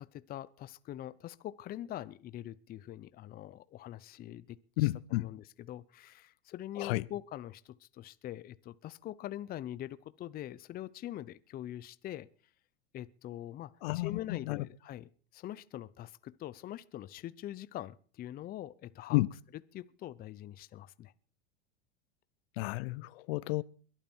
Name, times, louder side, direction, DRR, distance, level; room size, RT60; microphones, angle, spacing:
voice 1, 0.0-12.3 12.9-19.2 19.7-21.1, left 13 dB, 30° left, 0.6 m, -44 dB
voice 2, 4.8-5.3 6.8-7.0 13.8-14.6 19.1-19.3 22.6-23.6, left 20 dB, 70° left, 0.6 m, -31 dB
22.5 x 8.9 x 4.5 m
supercardioid pair, 115°, 31 cm